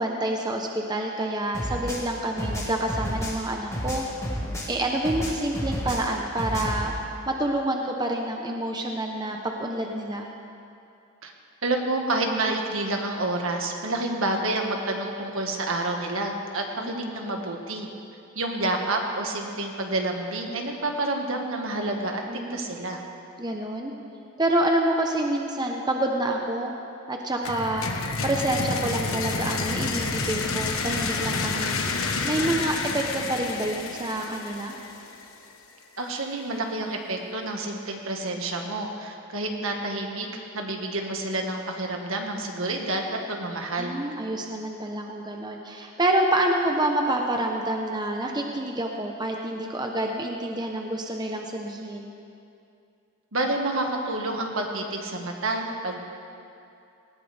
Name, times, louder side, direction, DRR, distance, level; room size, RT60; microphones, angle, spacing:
voice 1, 0.0-4.0 4.7-6.9 7.3-10.3 16.8-17.2 22.3-22.6 23.4-23.9 24.4-26.7 27.1-27.9 28.2-31.8 32.2-34.7 43.8-52.1, right 1 dB, 20° right, 1 dB, 0.9 m, -27 dB
sound 1, 1.5-4.8 5.0-6.9, equal, 15° left, 1.8 m, -31 dB
voice 2, 11.6-17.9 18.4-23.0 36.0-43.9 53.3-56.0, right 2 dB, 70° right, 2 dB, 1.8 m, -29 dB
sound 2, 27.4-35.2, left 4 dB, 80° left, 1.3 m, -29 dB
19.0 x 18.5 x 3.5 m, 2.6 s
head